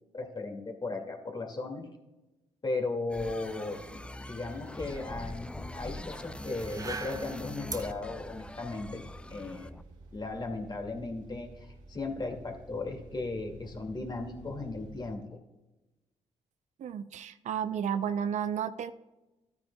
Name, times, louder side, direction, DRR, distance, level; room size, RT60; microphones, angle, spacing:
voice 1, 0.1-1.8 2.6-4.0 4.3-9.7 10.1-15.4, left 3 dB, 35° left, 3 dB, 2.2 m, -36 dB
sound 1, 3.1-9.8, left 1 dB, 10° left, 0.4 m, -43 dB
sound 2, 3.4-10.3, right 4 dB, 30° right, 0.7 m, -47 dB
sound 3, 5.6-15.2, right 2 dB, 85° right, 1.4 m, -52 dB
voice 2, 16.8-18.9, right 8 dB, 70° right, 12 dB, 0.5 m, -32 dB
13.0 x 9.4 x 2.3 m, 1.0 s
supercardioid pair, 60°, 13 cm